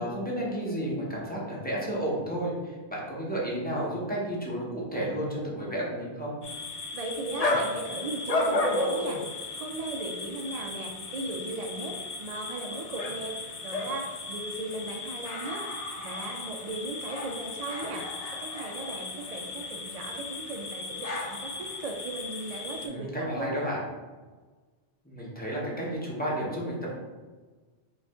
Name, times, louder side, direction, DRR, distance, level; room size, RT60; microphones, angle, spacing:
voice 1, 0.0-6.3 22.8-23.8 25.0-26.9, right 1 dB, 10° left, -5 dB, 0.9 m, -32 dB
sound 1, 6.4-22.9, left 2 dB, 45° left, 0.5 m, -34 dB
voice 2, 6.9-15.6 16.0-18.1 18.4-23.7, right 2 dB, 55° right, 2 dB, 0.4 m, -37 dB
4.8 x 2.4 x 3.6 m, 1.3 s
omnidirectional pair, 1.1 m